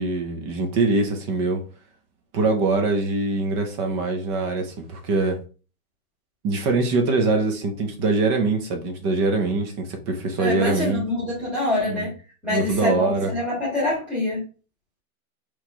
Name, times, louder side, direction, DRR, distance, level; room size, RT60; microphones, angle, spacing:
voice 1, 0.0-1.6 2.3-5.4 6.4-11.0 11.9-12.1 12.5-13.3, right 3 dB, 20° right, 4 dB, 0.5 m, -23 dB
voice 2, 10.4-12.1 12.4-14.4, left 2 dB, 5° right, -8 dB, 1.6 m, -25 dB
4.2 x 3.1 x 3.3 m, 0.35 s
hypercardioid pair, 155°, 42 cm